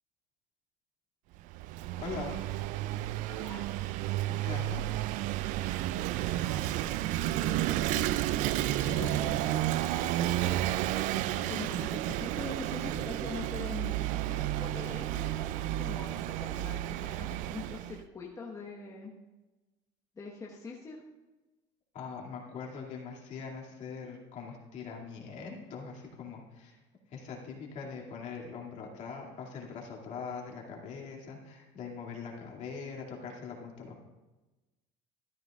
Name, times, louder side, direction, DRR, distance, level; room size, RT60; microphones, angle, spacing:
Vehicle / Engine, 1.4-18.0, right 14 dB, 65° right, 0.4 m, -32 dB
voice 1, 2.0-2.4 4.3-4.9 8.8-9.3 21.9-26.8 27.1-34.0, left 5 dB, 55° left, -1 dB, 2.5 m, -42 dB
voice 2, 3.3-3.7 6.4-7.0 7.2-7.6 7.9-8.2 8.5-10.4 11.1-15.5 15.8-19.1 20.2-21.0, left 4 dB, 25° left, -2 dB, 1.3 m, -44 dB
13.5 x 11.0 x 2.5 m, 1.1 s
supercardioid pair, 115°, 14 cm